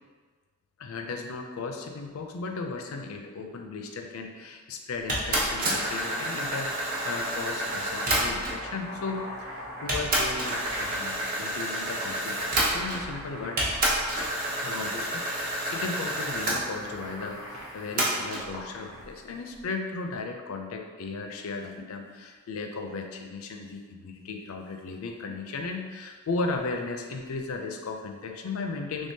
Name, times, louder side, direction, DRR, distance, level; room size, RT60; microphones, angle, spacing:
voice 1, 0.8-13.7 14.6-29.1, left 3 dB, 70° left, 4 dB, 0.4 m, -36 dB
sound 1, 5.1-8.7 9.4-9.5 9.9-13.2 13.6-16.6 18.0-18.5, right 1 dB, 40° right, 0.7 m, -29 dB
Boiling, 5.1-19.2, equal, 75° right, 0.8 m, -41 dB
3.6 x 3.2 x 2.7 m, 1.5 s
head